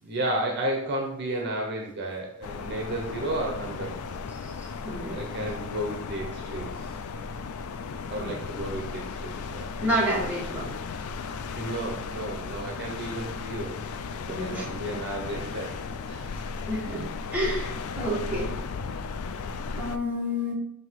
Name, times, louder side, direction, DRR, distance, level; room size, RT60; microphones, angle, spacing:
voice 1, 0.0-4.0 5.1-7.0 8.1-9.7 11.5-13.8 14.2-16.4, right 1 dB, 50° right, 1 dB, 0.9 m, -33 dB
sound 1, 2.4-20.0, left 5 dB, 75° left, 0.4 m, -35 dB
voice 2, 4.4-5.2 8.2-8.3 9.8-10.7 11.5-11.7 14.3-14.6 16.2-17.1 17.3-18.5 19.7-20.5, equal, 5° right, -5 dB, 1.7 m, -30 dB
7.7 x 2.8 x 4.6 m, 0.74 s
head